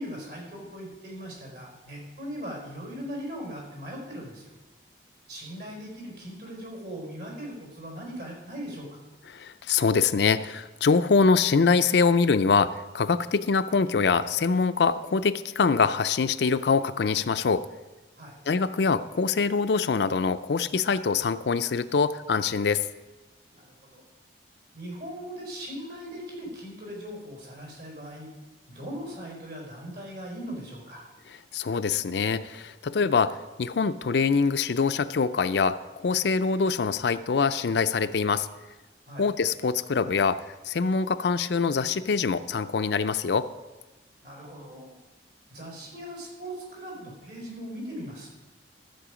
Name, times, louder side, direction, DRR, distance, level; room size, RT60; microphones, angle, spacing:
voice 1, 0.0-4.5 5.3-9.0 18.2-18.4 23.5-24.1 24.7-28.3 28.7-31.0 39.1-39.3 44.2-44.9 45.5-48.3, equal, 65° right, -2 dB, 4.6 m, -39 dB
voice 2, 9.3-17.6 18.5-22.8 31.5-38.5 39.2-43.5, left 5 dB, 65° left, 12 dB, 0.5 m, -24 dB
14.0 x 7.8 x 5.0 m, 1.2 s
head